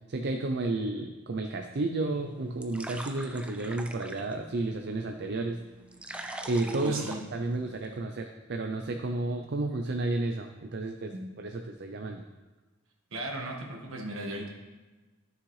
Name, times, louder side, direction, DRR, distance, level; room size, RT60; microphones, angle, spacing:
voice 1, 0.1-5.6 6.5-12.2, right 2 dB, 55° right, 4 dB, 0.5 m, -32 dB
sound 1, 2.1-8.0, right 1 dB, 5° right, 0.5 m, -44 dB
voice 2, 6.6-7.2 11.1-11.4 13.1-14.5, right 1 dB, 70° right, 0 dB, 1.6 m, -36 dB
13.0 x 6.4 x 3.2 m, 1.2 s
head